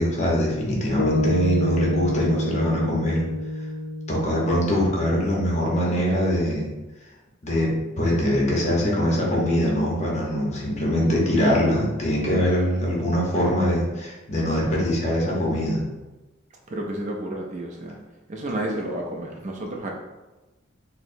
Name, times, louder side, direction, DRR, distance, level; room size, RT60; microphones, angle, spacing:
voice 1, 0.0-3.2 4.1-6.7 7.4-7.7 8.0-15.8, equal, 35° left, -4 dB, 0.8 m, -23 dB
sound 1, 1.0-5.4, left 1 dB, 60° left, 0.3 m, -28 dB
voice 2, 16.7-18.0 18.3-19.9, right 1 dB, 35° right, 0 dB, 0.4 m, -31 dB
4.4 x 2.0 x 2.6 m, 1.1 s
head